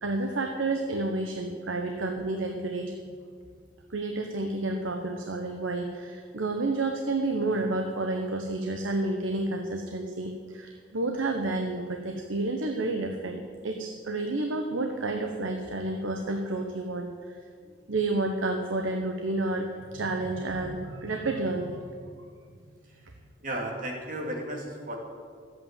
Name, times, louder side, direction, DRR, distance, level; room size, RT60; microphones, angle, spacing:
voice 1, 0.0-2.9 3.9-17.4 17.9-22.1, right 2 dB, 85° right, 4 dB, 1.1 m, -30 dB
voice 2, 23.4-25.0, right 1 dB, 45° right, 0 dB, 2.9 m, -34 dB
13.0 x 8.6 x 9.0 m, 2.1 s
head